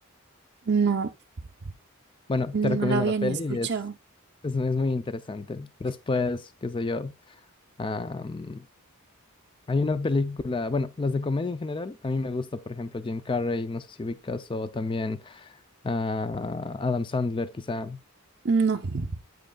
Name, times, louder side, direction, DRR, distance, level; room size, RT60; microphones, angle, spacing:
voice 1, 0.7-1.1 2.5-3.9 18.4-19.2, right 5 dB, 50° right, 0.6 m, -25 dB
voice 2, 2.3-3.7 4.4-7.4 7.8-8.6 9.7-15.6 15.8-18.0, left 3 dB, 25° left, 0.4 m, -29 dB
9.2 x 7.6 x 2.3 m
head